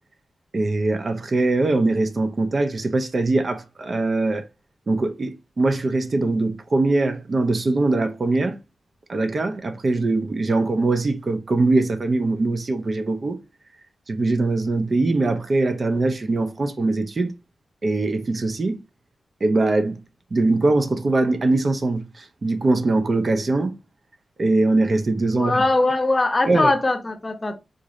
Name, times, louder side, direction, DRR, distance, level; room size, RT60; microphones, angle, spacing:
voice 1, 0.5-4.4 4.9-8.6 9.1-13.4 14.1-17.3 17.8-18.8 19.4-20.0 20.3-23.7 24.4-25.6 26.5-26.7, right 2 dB, 45° right, 0.5 m, -22 dB
voice 2, 25.3-27.5, left 2 dB, 30° left, 0.7 m, -21 dB
3.8 x 2.6 x 3.1 m
wide cardioid pair, 110°, 0 cm